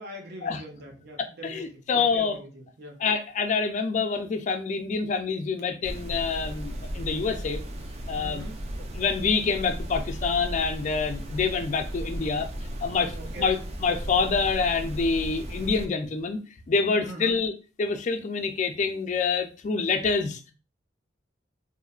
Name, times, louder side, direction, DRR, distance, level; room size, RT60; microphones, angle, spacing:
voice 1, 0.0-3.0 8.2-8.6 13.1-13.5 17.0-17.4, right 1 dB, 60° right, 0.7 m, -42 dB
voice 2, 1.2-2.4 3.0-7.6 8.1-8.4 8.9-12.5 12.8-16.4 16.7-17.5 17.8-20.5, left 5 dB, 40° left, 0.4 m, -26 dB
sound 1, 5.8-15.9, equal, 35° right, 0.4 m, -36 dB
3.0 x 2.1 x 2.3 m
head